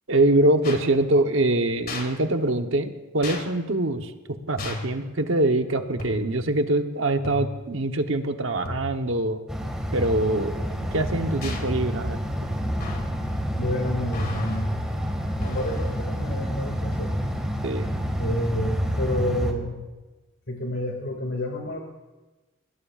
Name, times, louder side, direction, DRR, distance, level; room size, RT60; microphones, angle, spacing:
voice 1, 0.1-4.1 4.5-9.4 9.9-12.2 17.6-17.9, right 1 dB, 65° right, 6 dB, 1.1 m, -24 dB
sound 1, 0.6-0.8 1.9-2.1 3.2-3.4 4.6-4.9 6.0-6.4 7.2-7.7 8.7-9.1 10.0-10.5 11.4-11.7 12.8-13.2 14.1-14.7 15.4-16.0, left 1 dB, 50° left, 2.9 m, -35 dB
sound 2, 9.5-19.5, equal, 5° right, 2.0 m, -28 dB
voice 2, 13.6-14.8 15.4-17.2 18.2-19.8 20.5-21.8, left 1 dB, 75° left, 0 dB, 2.4 m, -29 dB
29.0 x 18.0 x 2.5 m, 1.2 s
head